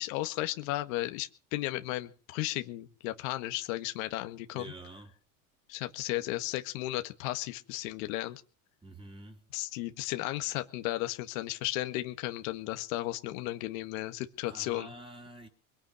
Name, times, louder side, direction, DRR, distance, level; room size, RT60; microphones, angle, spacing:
voice 1, 0.0-4.7 5.7-8.4 9.5-14.9, left 17 dB, 75° left, 1.7 m, -34 dB
voice 2, 4.5-5.1 8.8-9.4 14.4-15.5, right 1 dB, 15° right, 4.2 m, -47 dB
22.0 x 8.9 x 6.4 m
supercardioid pair, 105°, 41 cm